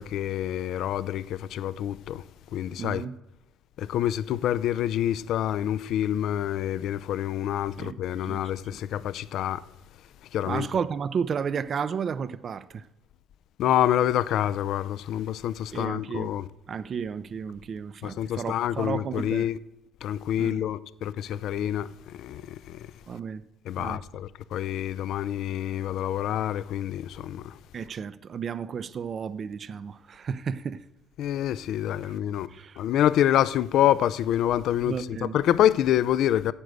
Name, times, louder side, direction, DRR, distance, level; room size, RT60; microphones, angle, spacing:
voice 1, 0.0-2.2 2.5-3.0 3.8-9.6 10.3-10.7 13.6-16.5 18.0-19.6 20.0-22.9 23.7-27.6 31.2-32.5 32.8-36.5, left 11 dB, 65° left, 0.5 m, -27 dB
voice 2, 2.8-3.2 7.8-8.0 8.3-8.8 10.4-12.8 15.7-16.3 16.7-19.5 20.4-20.6 23.1-23.5 23.8-24.0 27.7-30.8 32.0-32.1 32.5-32.8 34.8-35.4, right 6 dB, 40° right, 0.5 m, -33 dB
9.8 x 7.6 x 8.0 m
cardioid pair, 135°, 0 cm